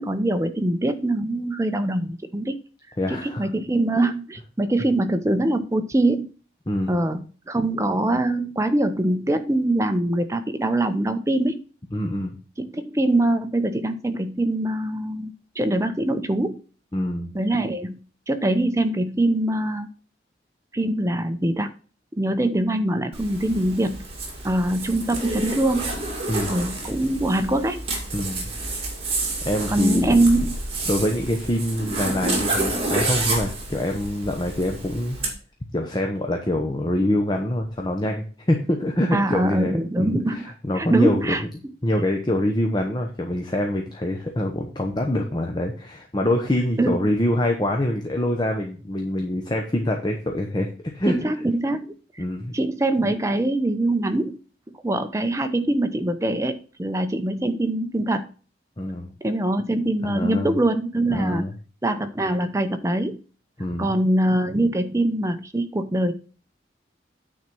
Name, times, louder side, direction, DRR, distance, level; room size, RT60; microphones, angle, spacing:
voice 1, 0.0-2.6 3.1-6.3 6.9-11.6 12.6-16.6 17.3-18.0 18.3-19.9 20.7-21.7 22.2-24.0 24.4-25.9 26.5-27.8 29.7-30.6 39.1-41.4 46.8-47.0 51.1-51.9 52.5-54.4 54.8-58.3 59.2-61.4 61.8-63.2 63.8-66.1, right 1 dB, 15° right, 9 dB, 0.6 m, -23 dB
voice 2, 3.0-3.5 6.7-6.9 11.9-12.3 16.9-17.3 26.3-26.5 28.1-28.5 29.4-30.2 30.9-35.2 35.7-41.4 41.8-50.7 50.9-51.1 52.2-52.5 58.8-59.1 60.0-60.6 61.1-61.5 63.6-64.1, left 1 dB, 25° left, 2 dB, 0.9 m, -25 dB
Zipper (clothing), 23.1-35.3, right 2 dB, 30° right, 2.4 m, -29 dB
9.2 x 4.3 x 6.0 m, 0.39 s
head